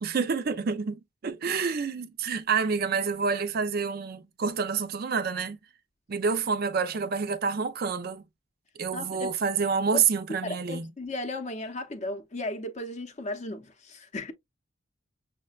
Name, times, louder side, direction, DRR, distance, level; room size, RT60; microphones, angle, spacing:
voice 1, 0.0-5.6 6.1-8.2 8.8-10.9, right 5 dB, 45° right, 0.4 m, -28 dB
voice 2, 8.9-9.3 9.9-10.0 10.4-14.3, left 2 dB, 35° left, 0.6 m, -35 dB
6.3 x 2.1 x 2.2 m
head